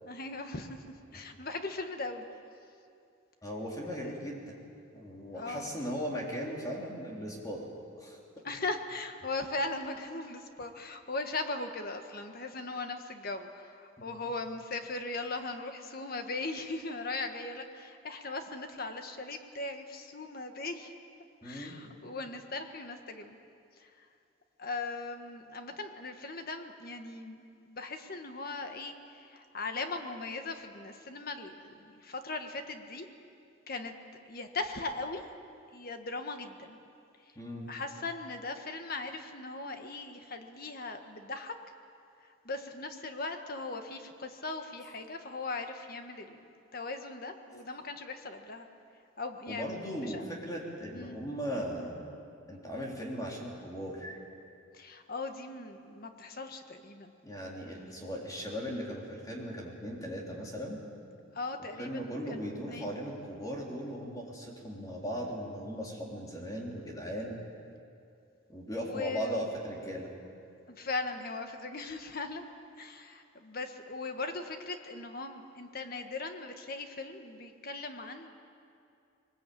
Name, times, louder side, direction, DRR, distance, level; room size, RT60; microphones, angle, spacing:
voice 1, 0.0-0.8 1.1-2.2 3.9-4.2 5.3-5.7 8.4-20.9 21.4-23.4 23.8-24.0 24.6-33.1 33.7-33.9 34.3-35.2 35.7-36.8 37.7-41.5 42.2-48.7 49.2-50.2 50.9-51.2 54.7-57.1 61.3-63.0 68.7-69.4 70.7-72.4 72.8-78.3, left 3 dB, 45° left, 6 dB, 1.5 m, -39 dB
voice 2, 3.4-4.6 4.9-7.7 8.0-8.2 14.0-14.1 21.4-21.8 37.4-37.7 49.5-52.0 52.5-54.2 57.2-60.8 61.8-67.4 68.5-70.1, equal, 15° left, -2 dB, 3.5 m, -38 dB
21.5 x 20.5 x 8.6 m, 2.5 s
head